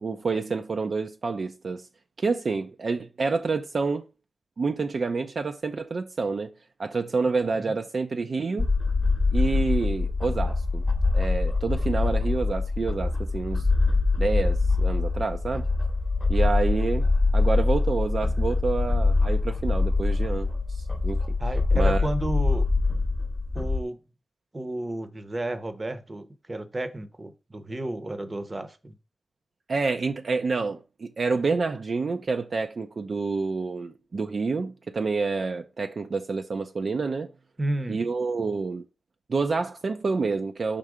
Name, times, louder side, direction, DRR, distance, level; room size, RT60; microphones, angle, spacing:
voice 1, 0.0-1.9 2.2-4.0 4.6-6.5 6.8-8.7 9.3-10.8 11.1-13.7 14.2-15.7 16.3-17.1 17.3-20.5 21.0-21.4 21.7-22.0 29.7-37.3 37.9-38.9 39.3-40.8, right 4 dB, 60° right, 0.5 m, -28 dB
sound 1, 8.6-23.8, left 3 dB, 20° left, 0.9 m, -24 dB
voice 2, 21.4-22.7 23.5-24.0 24.5-28.9 37.6-38.0, right 1 dB, 30° right, 0.8 m, -32 dB
5.5 x 3.7 x 4.9 m
wide cardioid pair, 100°, 0 cm